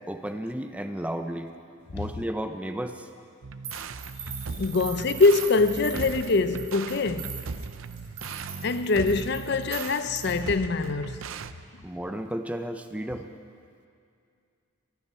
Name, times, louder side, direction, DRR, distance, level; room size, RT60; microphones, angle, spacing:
voice 1, 0.1-1.5 1.9-3.1 11.8-13.3, right 1 dB, 5° right, 0.6 m, -33 dB
sound 1, 3.4-11.5, right 4 dB, 80° right, 0.6 m, -38 dB
sound 2, 3.6-10.5, right 7 dB, 60° right, 3.8 m, -41 dB
voice 2, 4.6-7.4 8.6-11.3, left 3 dB, 55° left, 0.6 m, -24 dB
25.5 x 10.0 x 5.6 m
head